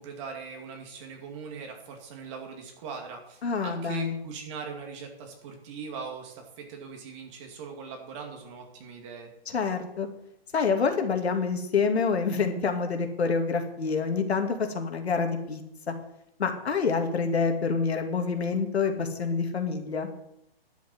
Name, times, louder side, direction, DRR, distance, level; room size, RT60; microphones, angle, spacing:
voice 1, 0.0-9.3, right 5 dB, 30° right, 2 dB, 2.5 m, -40 dB
voice 2, 3.4-4.2 9.5-10.1 10.5-15.6 15.9-16.0 16.4-20.1, left 5 dB, 85° left, 5 dB, 2.6 m, -27 dB
11.0 x 7.2 x 8.0 m, 0.79 s
hypercardioid pair, 160°, 31 cm